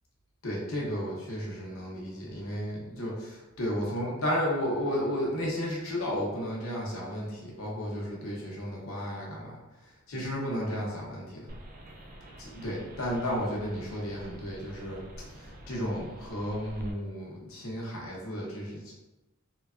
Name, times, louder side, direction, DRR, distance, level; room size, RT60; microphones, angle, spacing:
voice 1, 0.4-9.6 10.1-11.5 12.4-15.0 15.4-18.9, equal, 75° left, -3 dB, 0.8 m, -33 dB
sound 1, 11.5-16.9, equal, 40° right, 0.3 m, -47 dB
3.2 x 2.2 x 2.4 m, 1.1 s
head